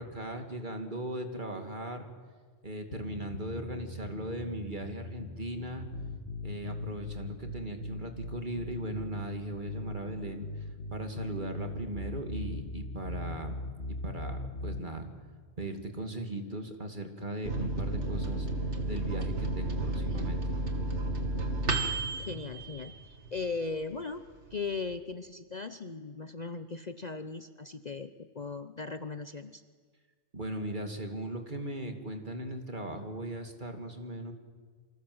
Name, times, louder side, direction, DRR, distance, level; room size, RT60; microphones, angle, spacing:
voice 1, 0.0-2.0 2.6-5.9 6.4-13.6 13.9-15.1 15.6-18.5 18.8-20.4 30.3-34.3, right 1 dB, 40° right, 5 dB, 2.7 m, -38 dB
sound 1, 2.9-14.9, left 2 dB, 60° left, 2.1 m, -40 dB
Microwave oven, 17.4-23.5 23.9-24.0 24.3-24.9, right 2 dB, 65° right, 2.7 m, -32 dB
voice 2, 19.9-20.3 21.8-29.6, left 4 dB, 40° left, 10 dB, 0.9 m, -38 dB
28.0 x 25.0 x 7.9 m, 1.5 s
omnidirectional pair, 1.3 m